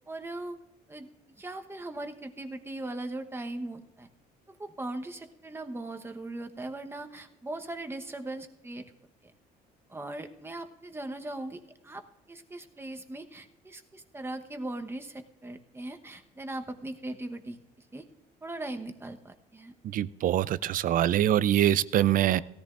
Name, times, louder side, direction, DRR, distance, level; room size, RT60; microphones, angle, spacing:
voice 1, 0.1-0.6 0.9-1.1 1.4-4.1 4.5-8.9 9.9-12.0 12.3-17.6 17.9-18.0 18.4-19.7, right 2 dB, 15° right, 6 dB, 1.0 m, -39 dB
voice 2, 19.8-22.4, right 12 dB, 55° right, 18 dB, 0.4 m, -24 dB
18.0 x 14.0 x 2.5 m, 0.95 s
cardioid pair, 110°, 17 cm